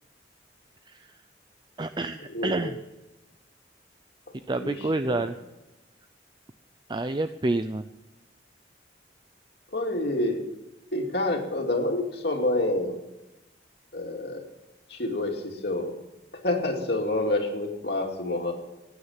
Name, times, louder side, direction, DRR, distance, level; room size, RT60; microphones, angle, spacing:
voice 1, 1.8-2.8 4.5-5.3 6.9-7.9, right 2 dB, 25° right, 10 dB, 0.4 m, -28 dB
voice 2, 2.3-2.7 4.6-5.3 9.7-10.4 10.9-12.9 13.9-14.5 14.9-15.9 16.3-18.5, left 2 dB, 60° left, 2 dB, 2.6 m, -28 dB
15.5 x 9.6 x 7.2 m, 1.0 s
head